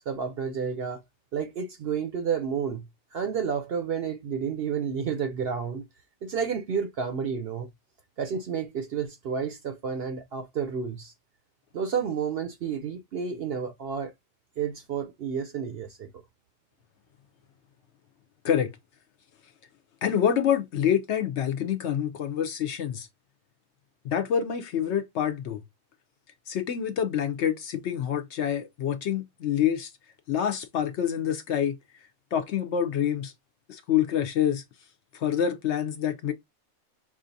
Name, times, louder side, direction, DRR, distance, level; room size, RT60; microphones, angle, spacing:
voice 1, 0.1-1.0 1.3-2.8 3.1-5.9 6.2-7.7 8.2-11.1 11.7-14.1 14.6-16.1, right 6 dB, 60° right, 0.7 m, -30 dB
voice 2, 20.0-23.1 24.0-25.6 26.5-29.9 30.3-31.8 32.3-33.3 33.7-34.6 35.1-36.3, left 9 dB, 65° left, 0.8 m, -26 dB
5.6 x 2.4 x 2.6 m
omnidirectional pair, 1.4 m